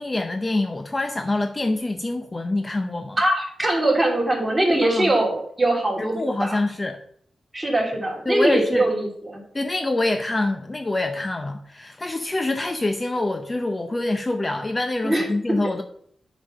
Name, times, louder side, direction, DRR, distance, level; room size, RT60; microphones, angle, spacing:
voice 1, 0.0-3.2 4.8-5.1 6.0-7.0 8.3-8.9 9.5-15.8, left 2 dB, 25° left, 6 dB, 0.7 m, -25 dB
voice 2, 3.2-6.6 7.5-9.4 15.0-15.2, right 1 dB, 15° right, -1 dB, 2.9 m, -22 dB
8.7 x 5.3 x 5.5 m, 0.65 s
wide cardioid pair, 100°, 0 cm